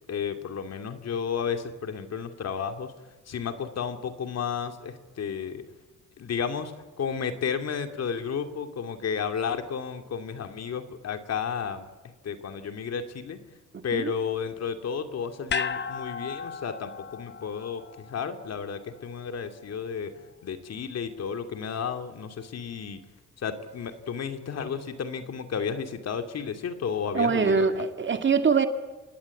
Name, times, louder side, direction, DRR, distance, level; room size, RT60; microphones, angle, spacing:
voice 1, 0.1-2.9 3.3-5.6 6.2-6.7 7.0-11.9 12.2-13.4 13.8-20.1 20.4-23.0 23.4-27.7, left 6 dB, 55° left, 2.6 m, -32 dB
sound 1, 15.5-19.8 20.2-20.3, left 5 dB, 35° left, 1.0 m, -36 dB
voice 2, 27.1-28.7, right 5 dB, 40° right, 2.1 m, -23 dB
28.5 x 18.5 x 8.5 m
cardioid pair, 90°, 30 cm